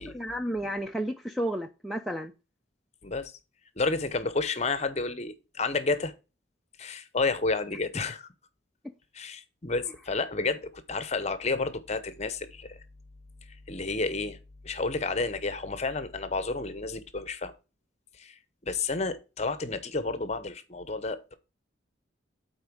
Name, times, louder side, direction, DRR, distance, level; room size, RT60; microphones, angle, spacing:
voice 1, 0.1-2.3, right 1 dB, ahead, 0.4 m, -32 dB
voice 2, 3.8-6.1 6.8-8.3 9.1-12.8 13.5-14.4 14.6-17.5 18.2-21.4, left 3 dB, 35° left, 0.8 m, -31 dB
8.6 x 4.4 x 4.7 m
head